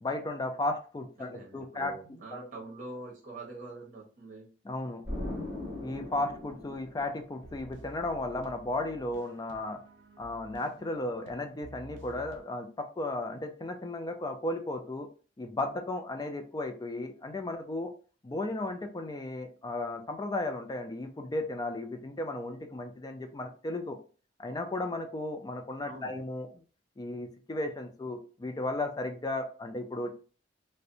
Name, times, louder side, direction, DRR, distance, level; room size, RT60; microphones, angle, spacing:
voice 1, 0.0-1.9 2.3-2.5 4.7-5.0 5.8-9.8 10.2-15.1 15.4-17.9 18.2-24.0 24.4-26.5 27.0-30.1, left 2 dB, 20° left, 6 dB, 0.3 m, -35 dB
voice 2, 1.2-4.5 25.8-26.1, right 2 dB, 45° right, -2 dB, 1.0 m, -44 dB
Explosion, 5.1-7.7, left 1 dB, 20° right, 1.1 m, -39 dB
sound 1, 7.4-12.4, right 1 dB, 80° right, 0.4 m, -52 dB
2.4 x 2.1 x 2.7 m, 0.38 s
head